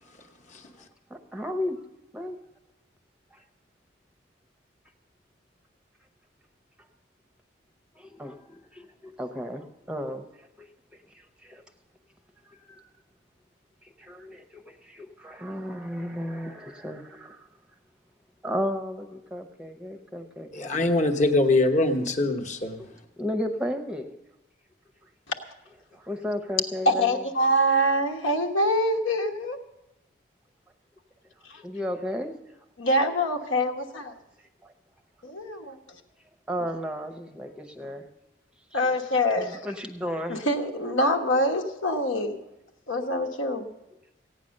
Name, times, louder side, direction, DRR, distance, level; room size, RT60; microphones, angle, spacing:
voice 1, 0.1-0.9 20.5-22.9, left 2 dB, 35° left, 5 dB, 1.0 m, -24 dB
voice 2, 1.1-1.8 2.1-2.4 3.3-3.4 8.0-10.7 11.1-11.6 12.5-12.8 13.8-17.5 18.4-21.0 23.2-24.1 25.9-27.2 31.6-32.4 34.6-34.7 36.5-38.0 38.7-38.9 39.4-40.4, equal, 5° right, 5 dB, 0.7 m, -34 dB
voice 3, 26.8-29.6 32.8-34.1 35.2-35.7 38.7-39.6 40.3-42.4 42.9-43.6, equal, 80° left, 4 dB, 1.3 m, -25 dB
15.5 x 9.2 x 6.4 m, 0.94 s
head